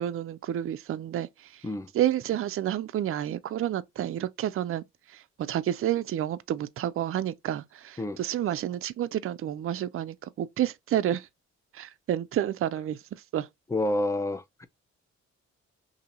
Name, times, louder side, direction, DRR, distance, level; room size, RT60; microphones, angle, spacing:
voice 1, 0.0-1.7 1.9-11.3 11.7-13.5, right 11 dB, 50° right, 0.4 m, -30 dB
voice 2, 13.7-14.7, left 1 dB, 10° left, 0.5 m, -29 dB
2.8 x 2.7 x 3.8 m
cardioid pair, 80°, 29 cm